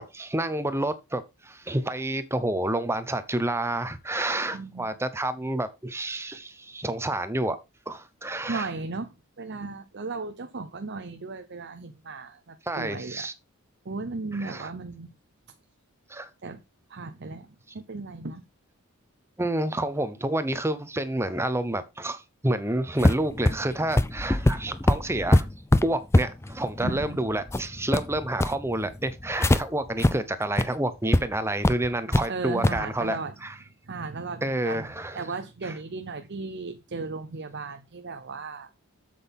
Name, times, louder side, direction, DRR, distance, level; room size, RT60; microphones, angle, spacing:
voice 1, 0.0-7.6 7.9-8.7 12.7-13.3 14.4-14.7 16.1-16.3 19.4-25.5 25.8-33.6 34.4-35.2 35.6-35.7, right 1 dB, 10° right, 0.9 m, -29 dB
voice 2, 4.5-4.9 8.5-13.3 13.8-15.1 16.4-16.6 16.9-17.5 17.7-18.4 26.8-27.2 32.3-33.3 33.9-38.7, right 3 dB, 50° right, 0.7 m, -36 dB
sound 1, 23.0-29.6 30.0-30.1 30.5-30.6 31.1-31.2 31.6-32.3 32.6-32.8, left 1 dB, 10° left, 0.4 m, -23 dB
8.0 x 7.8 x 3.6 m
head